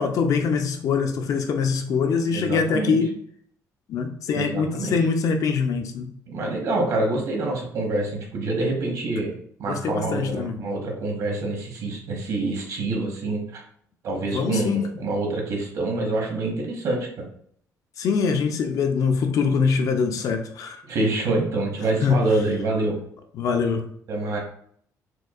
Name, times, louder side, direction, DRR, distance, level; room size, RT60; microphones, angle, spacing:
voice 1, 0.0-3.1 3.9-6.1 9.7-10.6 14.2-14.9 18.0-20.8 22.0-22.3 23.3-23.8, left 5 dB, 65° left, 0.5 m, -23 dB
voice 2, 2.3-3.0 4.3-5.0 6.3-13.6 14.0-17.2 20.9-23.0 24.1-24.4, right 2 dB, 65° right, 1.1 m, -26 dB
4.5 x 2.3 x 2.4 m
cardioid pair, 135°, 6 cm